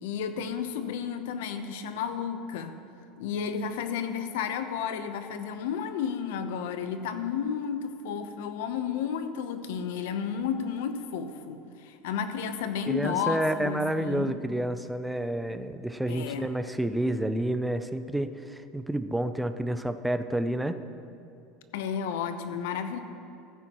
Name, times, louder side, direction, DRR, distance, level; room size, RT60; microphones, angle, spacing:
voice 1, 0.0-2.7 3.2-14.4 16.1-16.5 21.7-23.0, left 7 dB, 85° left, 9 dB, 0.7 m, -32 dB
voice 2, 12.9-20.8, right 1 dB, 5° right, 9 dB, 0.4 m, -29 dB
15.0 x 9.1 x 3.0 m, 2.6 s
supercardioid pair, 140°, 0 cm